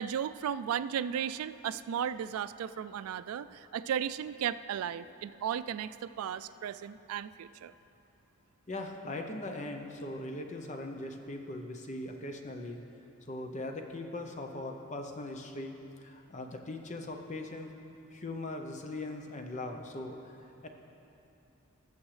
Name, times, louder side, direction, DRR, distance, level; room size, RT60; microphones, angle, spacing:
voice 1, 0.0-7.7, right 8 dB, 90° right, 15 dB, 0.3 m, -35 dB
voice 2, 8.7-12.8 13.3-17.7 18.1-20.7, left 2 dB, 35° left, 4 dB, 0.7 m, -40 dB
19.0 x 7.2 x 3.2 m, 2.9 s
head